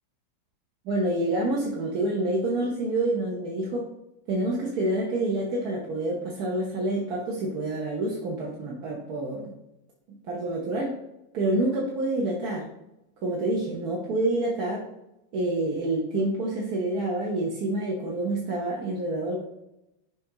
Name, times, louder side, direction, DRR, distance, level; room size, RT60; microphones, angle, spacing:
voice 1, 0.8-3.8 4.3-9.5 10.3-10.9 11.3-12.6 13.2-14.8 15.3-19.4, right 2 dB, 55° right, -3 dB, 1.4 m, -27 dB
5.9 x 5.1 x 3.8 m, 0.88 s
omnidirectional pair, 2.2 m